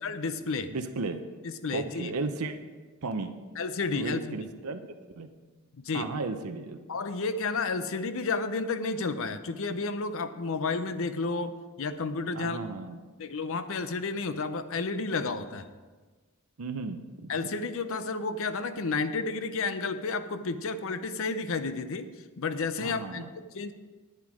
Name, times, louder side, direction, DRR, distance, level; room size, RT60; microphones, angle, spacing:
voice 1, 0.0-0.7 1.4-2.1 3.6-4.5 5.8-6.1 6.9-12.6 13.2-15.7 17.3-22.1 22.4-23.7, left 4 dB, 65° left, 11 dB, 0.7 m, -31 dB
voice 2, 0.7-1.2 1.7-2.5 3.0-3.3 4.0-4.8 5.2-5.3 5.9-6.8 12.3-13.0 16.6-17.5 22.8-23.3, right 3 dB, 80° right, 7 dB, 0.7 m, -34 dB
10.5 x 9.2 x 4.9 m, 1.4 s
head